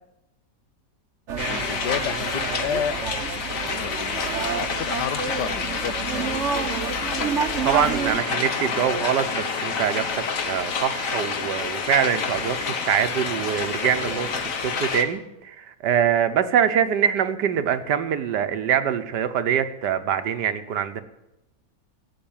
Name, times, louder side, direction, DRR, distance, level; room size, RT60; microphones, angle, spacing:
sound 1, 1.3-8.2, right 6 dB, 50° right, 1.1 m, -29 dB
sound 2, 1.4-15.0, left 5 dB, 50° left, 1.5 m, -28 dB
voice 1, 1.5-3.0 3.8-6.4, left 9 dB, 75° left, 15 dB, 1.3 m, -31 dB
voice 2, 7.6-14.3 14.6-21.0, right 8 dB, 70° right, 10 dB, 1.5 m, -24 dB
15.5 x 8.4 x 8.8 m, 0.92 s
omnidirectional pair, 1.9 m